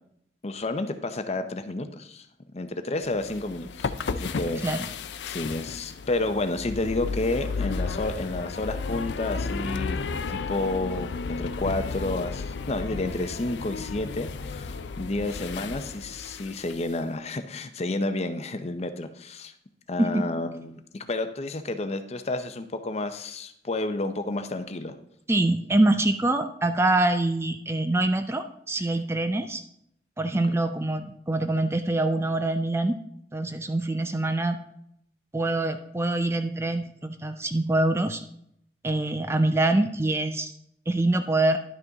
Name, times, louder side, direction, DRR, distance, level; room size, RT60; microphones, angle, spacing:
voice 1, 0.4-2.3 2.5-4.6 5.3-10.0 10.3-19.5 19.9-24.9 30.5-30.6, left 2 dB, 35° left, 9 dB, 0.7 m, -30 dB
sound 1, 3.1-17.0, left 4 dB, 75° left, 0.5 m, -33 dB
voice 2, 25.3-29.6 30.2-33.0 33.3-34.6 35.3-38.2 38.8-40.5 40.9-41.6, right 2 dB, 15° right, 8 dB, 0.4 m, -25 dB
11.0 x 6.0 x 3.9 m, 0.72 s
head